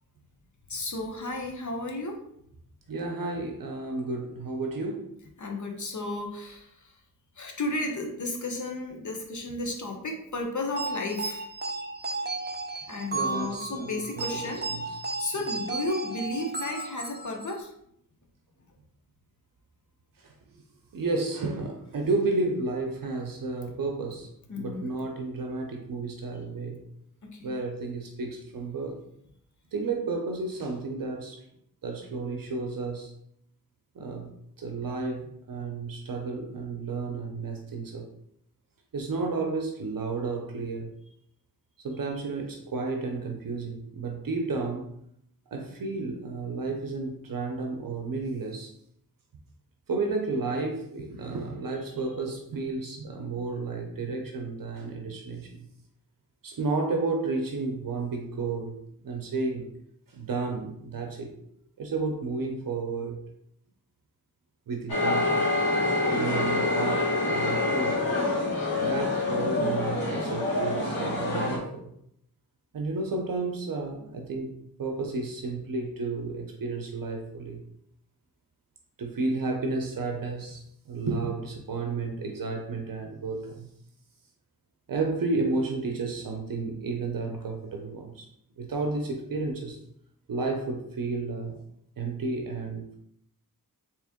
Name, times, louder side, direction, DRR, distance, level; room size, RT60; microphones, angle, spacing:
voice 1, 0.7-2.2 5.4-6.7 7.4-11.5 12.9-14.6 15.2-17.7 24.5-24.9 27.2-27.5, left 2 dB, 55° left, 1 dB, 0.8 m, -33 dB
voice 2, 2.9-5.1 13.1-14.4 14.7-14.9 20.2-20.3 20.9-24.3 24.6-26.8 27.4-29.0 29.7-31.4 31.8-33.1 34.0-38.1 38.9-40.9 41.8-44.9 45.5-48.7 49.9-55.7 56.4-58.8 59.0-59.6 60.1-61.4 61.8-63.2 64.7-65.5 66.1-68.0 68.8-71.9 72.7-77.6 79.0-83.7 84.9-88.3 88.6-89.8 90.3-91.6 92.0-93.0, right 3 dB, 70° right, 2 dB, 0.6 m, -32 dB
sound 1, 10.8-17.6, right 3 dB, 30° right, 0.4 m, -34 dB
sound 2, 64.9-71.6, left 2 dB, 90° left, 1.5 m, -26 dB
3.6 x 3.0 x 3.5 m, 0.73 s
wide cardioid pair, 85°, 35 cm